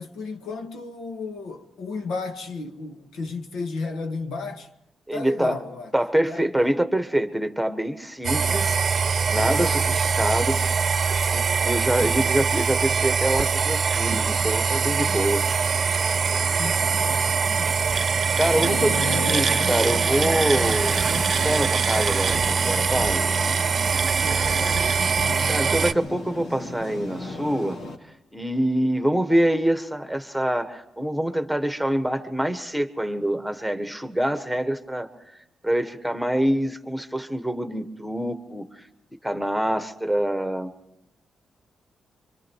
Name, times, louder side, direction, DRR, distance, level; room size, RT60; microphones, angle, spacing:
voice 1, 0.0-4.7 5.1-5.9 6.3-6.7 9.3-9.9 16.5-17.9 18.6-19.6 20.5-20.8 24.2-25.8, left 3 dB, 85° left, 1.9 m, -34 dB
voice 2, 5.1-5.5 5.9-8.8 9.3-10.8 11.3-15.6 18.4-18.9 19.3-21.0 21.3-23.3 25.5-27.8 28.3-35.1 35.6-38.8 39.2-40.7, right 1 dB, ahead, 1.5 m, -25 dB
sound 1, 8.2-25.9, right 6 dB, 50° right, 0.7 m, -23 dB
sound 2, 14.7-28.0, left 2 dB, 70° left, 2.3 m, -35 dB
27.0 x 25.0 x 4.7 m
cardioid pair, 100°, 0 cm